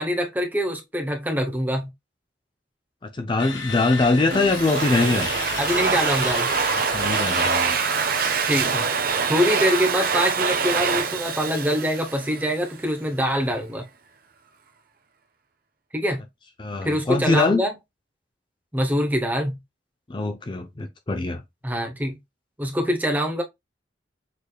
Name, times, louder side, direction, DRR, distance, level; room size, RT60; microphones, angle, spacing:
voice 1, 0.0-1.9 5.6-6.5 8.4-8.9 9.3-13.8 15.9-16.2 16.8-17.7 18.7-19.6 21.6-22.2 22.6-23.4, equal, 10° right, 0.8 m, -24 dB
voice 2, 3.1-5.3 6.9-7.8 16.6-17.6 20.1-21.4, left 3 dB, 25° left, 0.5 m, -22 dB
sound 1, 3.4-9.1, left 5 dB, 80° left, 1.3 m, -34 dB
Domestic sounds home sounds, 4.3-12.7, right 5 dB, 50° right, 0.8 m, -25 dB
6.6 x 3.3 x 2.3 m
head